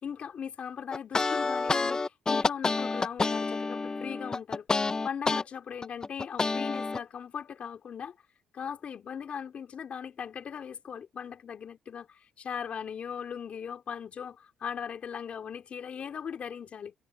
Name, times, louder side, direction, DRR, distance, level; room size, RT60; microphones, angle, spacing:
voice 1, 0.0-4.7 5.0-8.1 8.5-16.9, left 7 dB, 55° left, 3.2 m, -39 dB
sound 1, 0.9-5.4 5.8-7.0, left 3 dB, 25° left, 0.7 m, -28 dB
supercardioid pair, 70°, 3 cm